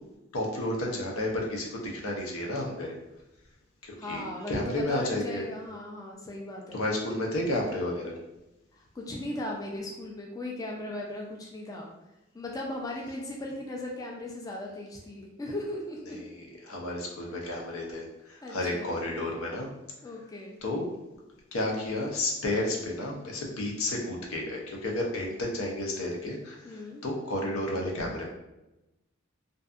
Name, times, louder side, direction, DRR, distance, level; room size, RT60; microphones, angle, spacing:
voice 1, 0.3-2.9 3.8-5.4 6.7-8.1 16.6-19.7 20.6-20.9 21.5-28.3, left 1 dB, 85° left, -1 dB, 0.6 m, -31 dB
voice 2, 4.0-6.8 8.7-11.9 12.3-16.2 18.4-19.0 20.0-20.6 26.6-27.0, left 1 dB, 15° left, -1 dB, 0.3 m, -37 dB
2.6 x 2.3 x 2.3 m, 0.94 s
head